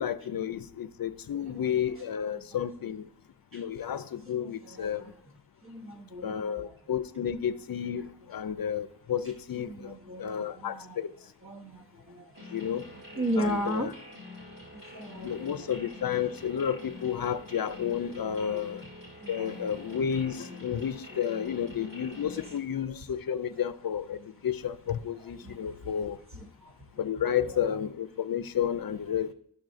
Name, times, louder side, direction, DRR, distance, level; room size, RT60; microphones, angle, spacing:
voice 1, 0.0-3.1 3.5-5.0 6.2-9.9 10.2-11.1 12.5-12.8 13.4-13.9 15.2-18.8 19.3-26.2 27.0-29.3, left 8 dB, 65° left, 12 dB, 0.5 m, -31 dB
voice 2, 1.3-3.0 3.5-3.7 4.3-5.2 5.6-6.8 8.2-8.3 9.6-11.0 11.4-12.4 12.9-14.0 14.7-15.7 18.1-18.7 19.2-20.0 20.5-21.2 22.3-22.5 22.9-23.0 23.4-23.7 24.9-25.9 26.3-27.7 29.1-29.3, equal, 35° right, 2 dB, 0.9 m, -38 dB
sound 1, 12.3-22.6, left 1 dB, 85° right, 3.0 m, -46 dB
12.5 x 6.1 x 2.5 m, 0.66 s
wide cardioid pair, 75°, 39 cm